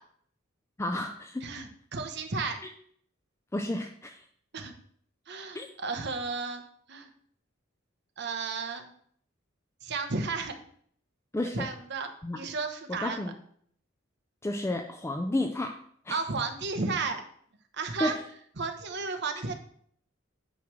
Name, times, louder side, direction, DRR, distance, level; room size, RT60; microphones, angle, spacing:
voice 1, 0.8-1.5 3.5-4.2 5.5-5.7 11.3-11.7 12.2-12.4 12.9-13.3 14.4-15.8 16.1-16.2 18.0-18.2, left 1 dB, 15° left, 4 dB, 0.4 m, -31 dB
voice 2, 1.4-2.6 4.5-4.7 5.3-6.6 6.9-7.1 8.2-8.9 9.8-10.6 11.5-13.2 16.1-17.2 17.7-18.2 18.6-19.6, right 4 dB, 55° right, 6 dB, 1.0 m, -33 dB
9.3 x 3.2 x 6.0 m, 0.62 s
head